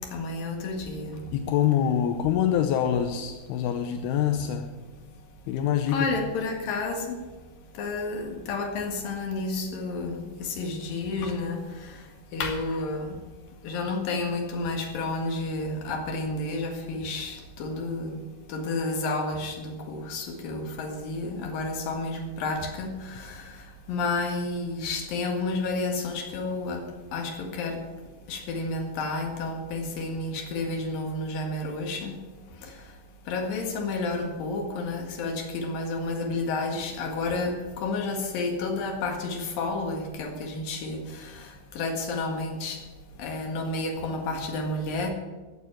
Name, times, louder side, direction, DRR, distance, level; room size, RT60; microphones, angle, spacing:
voice 1, 0.1-1.2 5.9-7.2 7.8-11.6 12.3-13.1 13.6-18.2 18.5-23.4 23.9-26.8 27.1-27.8 28.3-32.1 33.3-41.0 41.8-42.8 43.2-45.1, left 3 dB, 60° left, 3 dB, 3.2 m, -30 dB
voice 2, 1.3-4.7 5.5-6.1, left 9 dB, 80° left, 6 dB, 2.4 m, -25 dB
15.0 x 7.2 x 8.9 m, 1.2 s
omnidirectional pair, 5.2 m